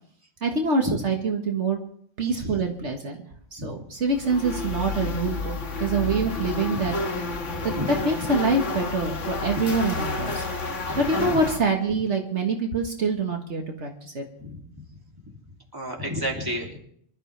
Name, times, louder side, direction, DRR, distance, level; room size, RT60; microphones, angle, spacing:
voice 1, 0.4-1.8 2.2-3.2 3.5-6.9 7.3-7.4 7.6-7.7 8.1-10.5 11.0-14.3, right 3 dB, 65° right, 2 dB, 1.9 m, -25 dB
sound 1, 4.1-11.6, left 3 dB, 80° left, 1.8 m, -30 dB
voice 2, 7.5-8.0 10.8-11.4 14.4-14.6 15.7-16.8, equal, 15° right, -1 dB, 2.9 m, -32 dB
25.0 x 13.0 x 3.4 m, 0.65 s
omnidirectional pair, 1.3 m